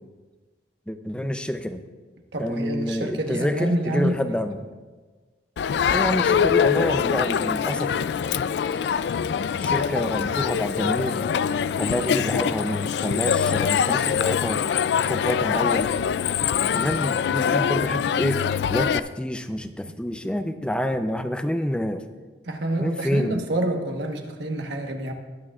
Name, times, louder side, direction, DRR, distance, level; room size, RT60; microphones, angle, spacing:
voice 1, 0.9-1.8 2.4-4.6 5.9-7.9 9.6-11.3 11.8-14.6 15.0-15.9 16.7-18.4 18.7-22.0 22.8-23.4, equal, 5° left, 8 dB, 0.5 m, -27 dB
voice 2, 2.3-4.5 12.0-12.6 22.4-25.1, right 1 dB, 80° right, 4 dB, 1.3 m, -28 dB
Crowd, 5.6-19.0, left 7 dB, 70° left, 0.3 m, -23 dB
21.5 x 8.9 x 2.4 m, 1.3 s
head